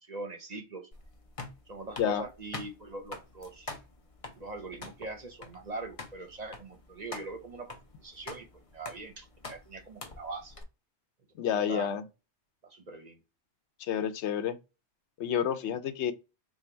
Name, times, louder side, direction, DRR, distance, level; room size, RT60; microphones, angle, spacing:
voice 1, 0.0-0.9 1.7-3.7 4.4-8.5 8.7-10.6 11.5-11.9 12.6-13.2, right 3 dB, 45° right, 0.7 m, -42 dB
sound 1, 0.9-10.6, left 3 dB, 35° left, 0.7 m, -46 dB
voice 2, 11.4-12.0 13.8-14.6 15.2-16.1, left 9 dB, 85° left, 0.9 m, -29 dB
3.7 x 2.2 x 4.3 m
omnidirectional pair, 1.1 m